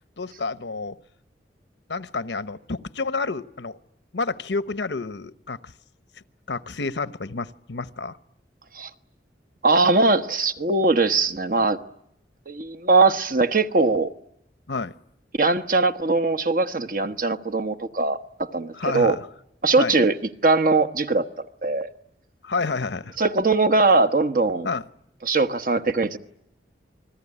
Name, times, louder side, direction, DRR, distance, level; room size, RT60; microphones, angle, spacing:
voice 1, 0.2-0.9 1.9-3.8 4.1-5.7 6.5-8.2 14.7-14.9 18.7-19.3 19.8-20.0 22.4-23.2 24.6-24.8, left 3 dB, 80° left, 1.0 m, -29 dB
voice 2, 9.6-11.8 12.5-14.1 15.4-19.2 19.6-20.1 20.4-21.9 23.2-24.7 25.2-26.2, right 3 dB, 50° right, 1.2 m, -21 dB
29.0 x 21.0 x 9.9 m
head